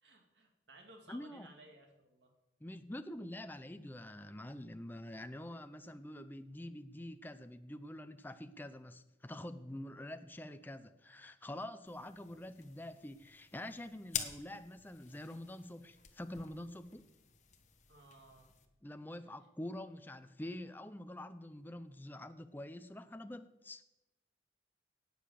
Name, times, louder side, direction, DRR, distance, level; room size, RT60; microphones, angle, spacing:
voice 1, 0.0-2.3 17.9-18.5, right 2 dB, 70° right, 3 dB, 2.4 m, -59 dB
voice 2, 1.1-1.5 2.6-17.0 18.8-23.8, left 1 dB, 10° left, 9 dB, 0.5 m, -46 dB
sound 1, 11.9-18.7, left 8 dB, 40° left, 1.2 m, -48 dB
18.0 x 6.7 x 7.0 m, 0.98 s
head